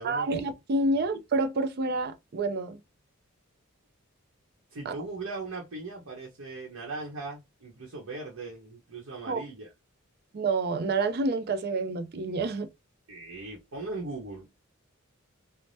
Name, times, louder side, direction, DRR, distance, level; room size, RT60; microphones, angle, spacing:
voice 1, 0.0-2.8 4.9-5.0 9.3-9.4 10.3-12.7, right 3 dB, 50° right, 0.4 m, -28 dB
voice 2, 4.7-9.7 13.1-14.5, right 3 dB, 85° right, 0.9 m, -39 dB
3.3 x 2.1 x 2.6 m
head